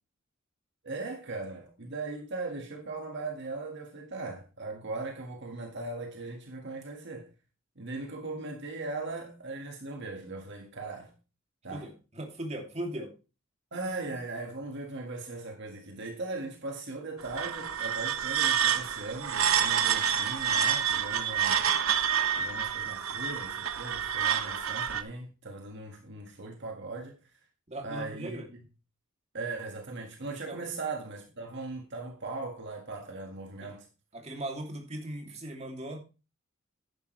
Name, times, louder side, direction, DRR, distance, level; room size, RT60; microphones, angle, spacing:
voice 1, 0.8-7.3 7.8-11.1 11.6-11.9 13.7-21.7 22.3-27.2 27.8-28.6 29.3-33.9, right 3 dB, 60° right, 1.8 m, -39 dB
voice 2, 11.7-13.1 27.7-28.5 30.2-30.7 33.6-33.7 34.1-36.0, right 1 dB, 30° right, 2.8 m, -38 dB
sound 1, 17.2-25.0, right 8 dB, 85° right, 1.1 m, -28 dB
11.0 x 10.5 x 3.2 m
head